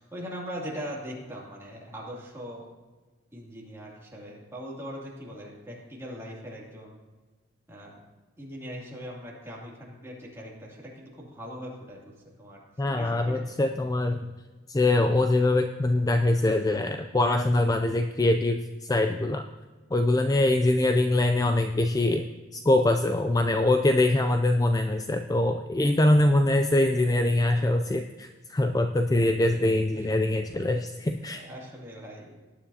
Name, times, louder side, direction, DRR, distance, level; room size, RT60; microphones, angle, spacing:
voice 1, 0.0-2.6 3.3-7.0 7.7-7.9 8.4-12.0 12.4-12.6 13.0-13.4 30.0-30.1 31.3-32.3, equal, 15° right, -4 dB, 2.6 m, -40 dB
voice 2, 12.8-14.3 14.7-19.4 19.9-22.2 22.5-31.4, left 2 dB, 20° left, 6 dB, 0.3 m, -23 dB
19.0 x 9.9 x 2.8 m, 1.3 s
head